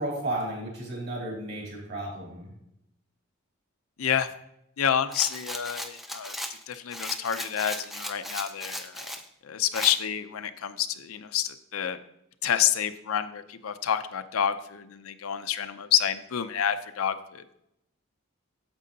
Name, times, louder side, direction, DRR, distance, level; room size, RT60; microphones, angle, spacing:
voice 1, 0.0-2.5, right 1 dB, 50° right, -3 dB, 3.3 m, -33 dB
voice 2, 4.0-4.3 4.8-6.4 6.7-9.0 9.4-12.0 12.4-17.4, left 9 dB, 85° left, 10 dB, 0.5 m, -28 dB
Rattle, 5.1-9.2 9.7-10.0, equal, ahead, 0.4 m, -36 dB
8.9 x 7.5 x 2.8 m, 0.80 s
head